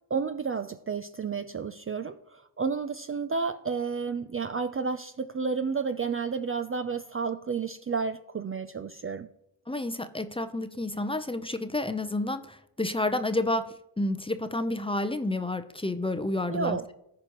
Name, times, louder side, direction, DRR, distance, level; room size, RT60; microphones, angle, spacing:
voice 1, 0.1-9.3 16.5-16.8, right 5 dB, 30° right, 9 dB, 0.5 m, -31 dB
voice 2, 9.7-16.9, left 2 dB, 10° left, 9 dB, 0.6 m, -30 dB
15.0 x 5.0 x 3.0 m, 0.79 s
supercardioid pair, 50°, 49 cm